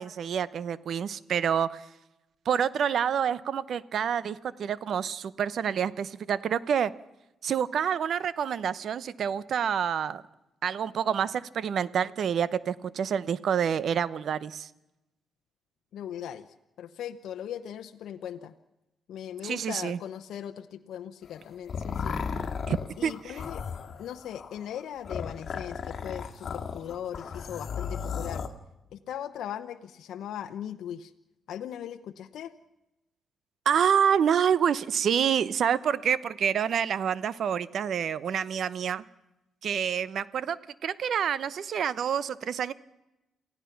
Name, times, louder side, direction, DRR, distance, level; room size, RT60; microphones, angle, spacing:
voice 1, 0.0-1.8 2.5-6.9 7.4-10.2 10.6-14.7 19.4-20.0 22.7-23.4 33.6-39.0 39.6-42.7, right 8 dB, 65° right, 17 dB, 0.8 m, -27 dB
voice 2, 15.9-16.5 16.8-18.5 19.1-22.2 23.0-23.6 24.0-28.4 28.9-31.1 31.5-32.5, left 10 dB, 80° left, 7 dB, 0.8 m, -39 dB
sound 1, 21.2-28.5, left 6 dB, 55° left, 2.0 m, -35 dB
28.0 x 16.0 x 5.9 m, 0.96 s
cardioid pair, 80°, 0 cm